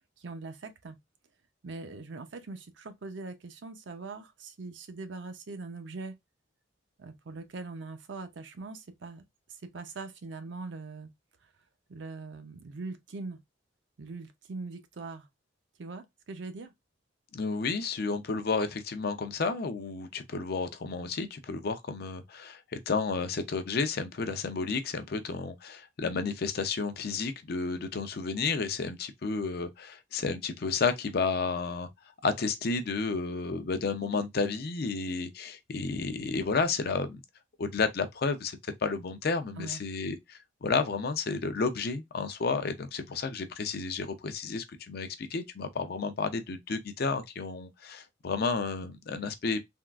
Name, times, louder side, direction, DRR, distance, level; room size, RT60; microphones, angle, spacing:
voice 1, 0.2-1.0 1.6-6.2 7.0-9.2 9.5-11.1 11.9-13.4 14.0-15.3 15.8-16.7 39.6-39.8, right 3 dB, 65° right, 0.5 m, -41 dB
voice 2, 17.3-31.9 32.2-37.2 37.6-49.6, left 4 dB, 55° left, 0.5 m, -31 dB
3.5 x 2.3 x 2.3 m
head